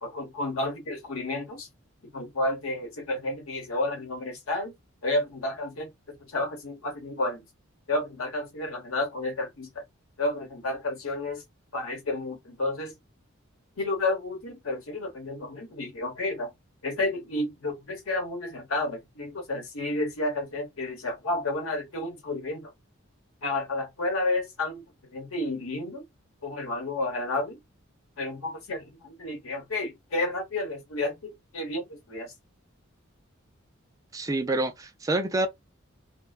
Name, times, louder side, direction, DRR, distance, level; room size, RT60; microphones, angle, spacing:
voice 1, 0.0-1.7 2.1-4.7 5.0-7.5 7.9-9.8 10.2-11.4 11.7-12.9 13.8-16.5 16.8-22.7 23.4-26.0 26.4-27.6 28.2-32.3, left 2 dB, 85° left, 1.0 m, -31 dB
voice 2, 34.1-35.5, right 2 dB, 15° right, 0.3 m, -27 dB
2.5 x 2.1 x 2.3 m
head